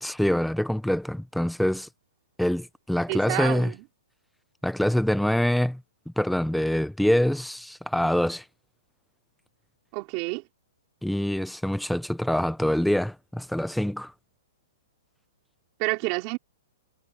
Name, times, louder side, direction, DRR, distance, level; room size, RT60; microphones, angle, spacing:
voice 1, 0.0-1.9 2.4-3.7 4.6-5.8 6.2-8.4 11.0-14.1, left 1 dB, ahead, 0.7 m, -25 dB
voice 2, 3.1-3.8 9.9-10.4 15.8-16.4, right 28 dB, 30° right, 5.3 m, -29 dB
hypercardioid pair, 160°, 0 cm